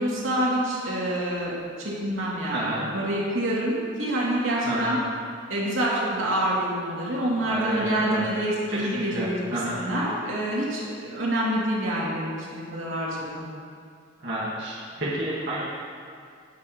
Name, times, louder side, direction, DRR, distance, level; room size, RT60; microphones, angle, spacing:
voice 1, 0.0-5.0 5.5-9.3 9.7-13.5, right 1 dB, 90° right, -6 dB, 2.5 m, -27 dB
voice 2, 2.5-2.9 4.6-4.9 7.4-8.2 8.7-9.8 14.2-15.6, right 1 dB, 60° right, -8 dB, 1.8 m, -30 dB
17.0 x 6.2 x 3.0 m, 2.2 s
head